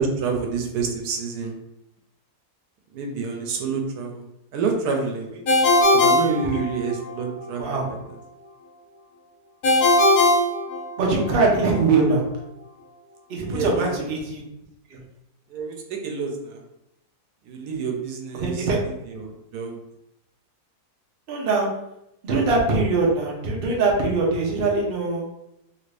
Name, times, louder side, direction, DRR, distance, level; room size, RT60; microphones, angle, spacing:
voice 1, 0.0-1.6 2.9-4.2 4.5-5.4 5.9-8.0 13.5-13.9 15.5-16.6 17.4-18.7 19.1-19.8, right 4 dB, 85° right, 3 dB, 1.2 m, -28 dB
Ringtone, 5.5-7.1 9.6-11.3, left 1 dB, 75° left, 1.3 m, -19 dB
voice 2, 7.6-7.9 11.0-12.2 13.3-14.4 14.9-15.0 18.3-18.8 21.3-21.7 22.2-25.3, right 3 dB, 50° right, -1 dB, 0.7 m, -22 dB
3.0 x 2.5 x 3.2 m, 0.85 s
omnidirectional pair, 1.7 m